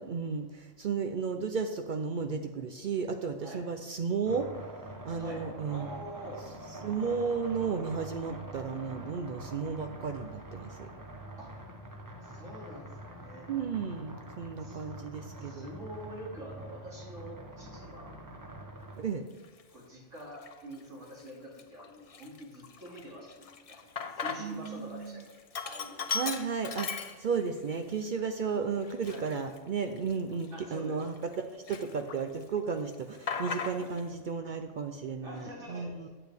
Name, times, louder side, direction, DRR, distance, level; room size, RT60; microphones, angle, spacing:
voice 1, 0.1-4.5 5.0-5.9 6.8-10.9 13.5-15.7 19.0-19.2 24.4-25.2 26.1-36.1, right 5 dB, 60° right, 6 dB, 0.5 m, -34 dB
sound 1, 4.3-19.1, right 1 dB, 20° right, 0.7 m, -45 dB
voice 2, 5.2-6.4 11.4-11.5 12.2-13.5 14.6-14.9 15.4-18.2 19.7-23.9 24.1-26.0 29.1-29.3 30.5-31.0 33.8-33.9 35.2-36.1, equal, 90° right, -5 dB, 2.9 m, -46 dB
Sink (filling or washing), 19.4-19.6 20.3-20.8 21.2-21.3 21.6-24.7 25.0-27.6 28.0-28.1 28.8-31.4 31.7-32.4 32.7-34.1, left 5 dB, 50° left, 0.4 m, -38 dB
8.7 x 8.0 x 3.4 m, 1.3 s
omnidirectional pair, 1.3 m